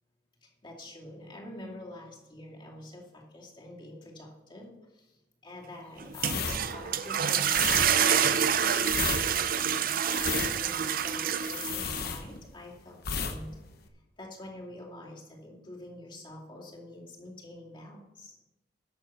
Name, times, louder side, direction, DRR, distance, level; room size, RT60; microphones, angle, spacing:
voice 1, 0.4-5.2 5.4-9.9 10.4-13.6 14.2-18.4, left 1 dB, 30° left, -2 dB, 2.5 m, -47 dB
sound 1, 6.0-12.1, right 8 dB, 55° right, 0.6 m, -27 dB
sound 2, 6.1-12.7 13.0-13.4 13.6-13.9, left 6 dB, 60° left, 1.0 m, -34 dB
11.5 x 7.2 x 5.7 m, 0.98 s
head